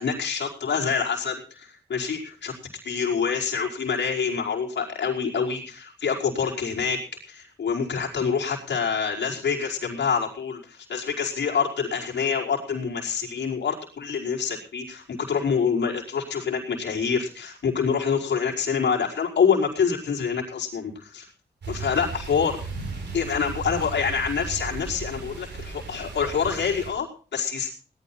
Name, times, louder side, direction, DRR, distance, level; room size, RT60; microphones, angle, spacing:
voice 1, 0.0-2.5 2.8-7.0 7.3-21.3 21.7-22.6 23.1-27.7, left 6 dB, 90° left, -3 dB, 5.0 m, -26 dB
sound 1, 21.6-26.9, right 4 dB, 85° right, 7.7 m, -36 dB
19.0 x 12.0 x 4.2 m, 0.39 s
wide cardioid pair, 90°, 18 cm